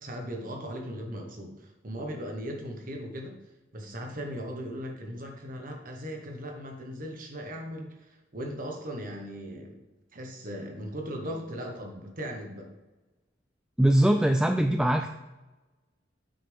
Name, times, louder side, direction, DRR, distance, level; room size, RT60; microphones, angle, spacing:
voice 1, 0.0-3.4 3.7-9.8 10.1-12.7, equal, 45° right, 2 dB, 1.3 m, -38 dB
voice 2, 13.8-15.1, right 1 dB, 5° right, 6 dB, 0.3 m, -22 dB
9.2 x 6.9 x 3.6 m, 1.1 s
head